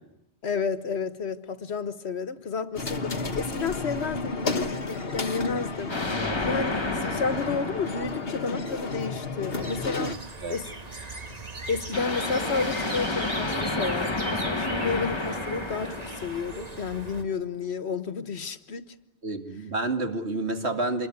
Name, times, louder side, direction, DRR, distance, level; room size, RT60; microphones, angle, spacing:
voice 1, 0.4-10.2 10.5-10.7 11.7-18.9, left 5 dB, 85° left, 1.5 m, -31 dB
sound 1, 2.8-10.1, left 3 dB, 65° left, 1.5 m, -32 dB
sound 2, 5.9-9.0 11.9-17.1, left 2 dB, 25° left, 1.5 m, -31 dB
sound 3, 9.5-17.2, right 2 dB, 40° right, 1.8 m, -39 dB
voice 2, 19.2-21.1, right 2 dB, 80° right, 2.8 m, -29 dB
26.5 x 21.5 x 9.7 m
omnidirectional pair, 1.1 m